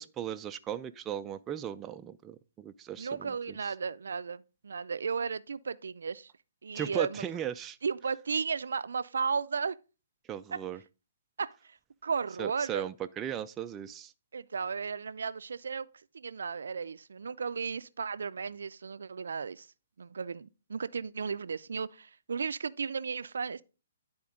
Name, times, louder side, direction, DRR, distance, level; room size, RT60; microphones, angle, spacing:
voice 1, 0.0-3.7 6.7-7.8 10.3-10.8 12.4-14.1, right 10 dB, 15° right, 0.3 m, -37 dB
voice 2, 3.0-6.3 6.6-7.2 7.8-9.8 10.5-10.6 11.4-11.8 12.0-12.9 14.3-15.9 16.1-19.7 20.0-23.6, right 5 dB, 85° right, 0.4 m, -34 dB
11.0 x 4.3 x 3.6 m
hypercardioid pair, 155°, 0 cm